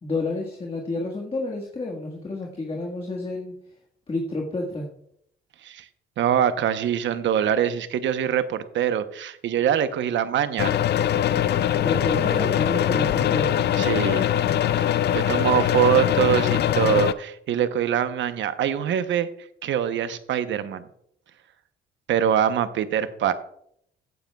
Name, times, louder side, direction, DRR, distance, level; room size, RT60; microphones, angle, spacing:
voice 1, 0.0-3.5 4.1-4.9 11.8-13.5, left 2 dB, 30° left, 1 dB, 1.6 m, -29 dB
voice 2, 6.2-10.7 13.8-14.3 14.8-19.3 19.6-20.9 22.1-23.3, right 9 dB, 70° right, 11 dB, 0.9 m, -24 dB
sound 1, 10.6-17.1, left 10 dB, 55° left, 0.5 m, -22 dB
15.0 x 9.1 x 2.3 m, 0.70 s
cardioid pair, 90°, 20 cm